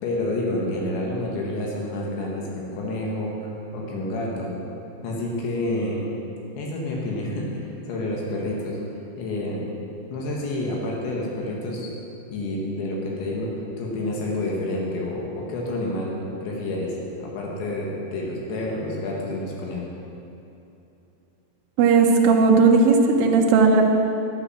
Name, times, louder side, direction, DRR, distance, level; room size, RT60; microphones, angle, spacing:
voice 1, 0.0-3.3 3.7-4.5 5.0-6.1 6.6-8.8 9.2-9.7 10.1-11.9 12.3-13.5 13.8-16.9 17.2-19.9, left 1 dB, 75° left, -2 dB, 3.7 m, -29 dB
voice 2, 21.8-23.8, right 4 dB, 85° right, 1 dB, 2.0 m, -16 dB
11.5 x 8.7 x 6.3 m, 2.9 s
omnidirectional pair, 5.3 m